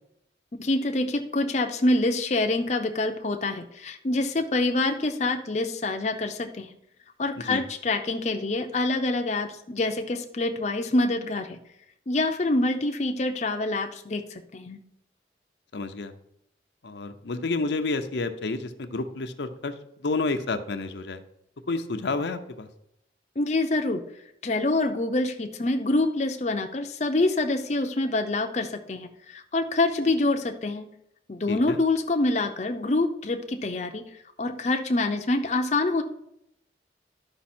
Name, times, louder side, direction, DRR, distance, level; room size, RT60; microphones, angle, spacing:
voice 1, 0.6-6.7 7.2-11.6 12.1-14.8 23.4-24.0 24.4-30.9 31.3-34.0 34.4-36.0, left 2 dB, 40° left, 4 dB, 0.6 m, -26 dB
voice 2, 15.7-16.1 16.8-19.7 20.0-21.2 21.7-22.7 31.5-31.8, left 3 dB, 80° left, 7 dB, 0.6 m, -30 dB
11.5 x 5.3 x 4.3 m, 0.77 s
head